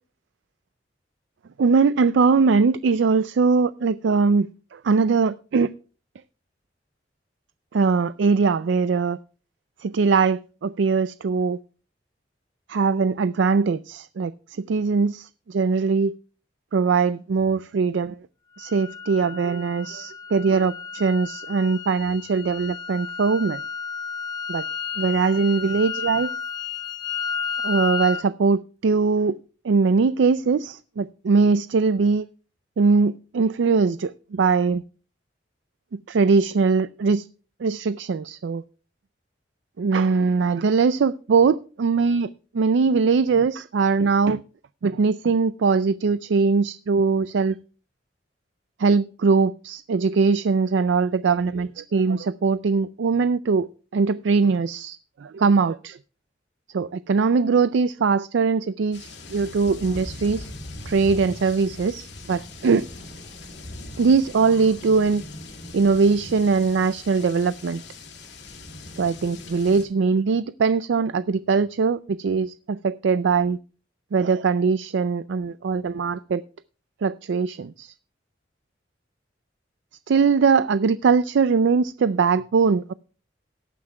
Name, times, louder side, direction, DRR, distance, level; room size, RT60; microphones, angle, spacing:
voice 1, 1.6-5.7 7.7-9.2 9.8-11.6 12.7-16.1 16.7-18.2 18.6-23.6 24.5-24.7 25.0-26.3 27.6-29.4 29.6-32.3 32.8-34.8 35.9-37.3 37.6-38.6 39.8-42.3 42.5-44.4 44.8-47.6 48.8-53.7 53.9-56.0 56.7-60.5 60.9-62.9 64.0-65.2 65.7-67.8 69.0-73.6 74.1-76.4 77.0-77.9 80.1-82.9, right 4 dB, 75° right, 0.4 m, -21 dB
sound 1, 18.6-28.2, left 6 dB, 20° left, 0.8 m, -32 dB
sound 2, 58.9-69.9, left 2 dB, 65° left, 2.4 m, -40 dB
18.0 x 9.6 x 2.2 m
head